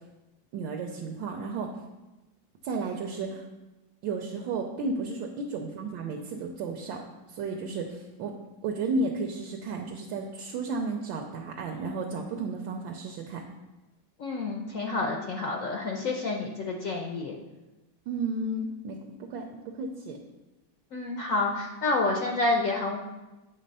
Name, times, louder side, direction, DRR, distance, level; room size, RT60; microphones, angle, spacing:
voice 1, 0.5-1.7 2.6-3.4 4.0-7.0 7.3-8.4 8.6-13.4 18.1-20.2, right 3 dB, 75° right, 1 dB, 1.3 m, -33 dB
voice 2, 14.2-17.4 20.9-23.0, left 3 dB, 80° left, 1 dB, 0.7 m, -29 dB
7.8 x 3.3 x 5.3 m, 1.1 s
omnidirectional pair, 2.1 m